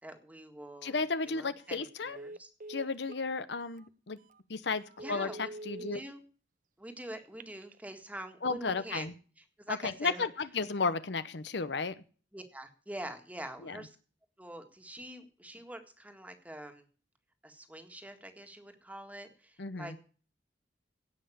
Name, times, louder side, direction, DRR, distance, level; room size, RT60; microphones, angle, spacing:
voice 1, 0.0-1.0 1.3-2.5 5.0-5.5 5.9-6.2 6.8-9.1 9.4-10.3 12.3-14.0 14.4-16.9 17.4-20.0, right 1 dB, 10° right, 6 dB, 1.7 m, -45 dB
voice 2, 0.8-2.2 2.7-4.2 4.5-6.0 8.4-9.1 9.7-11.9 13.6-13.8 19.6-20.0, left 4 dB, 65° left, 13 dB, 0.8 m, -33 dB
Telephone, 1.6-1.8 2.1-3.2 3.8-3.9 4.3-4.4 4.9-6.0 7.2-7.8, right 2 dB, 45° right, 0.6 m, -45 dB
17.0 x 5.7 x 8.6 m, 0.40 s
head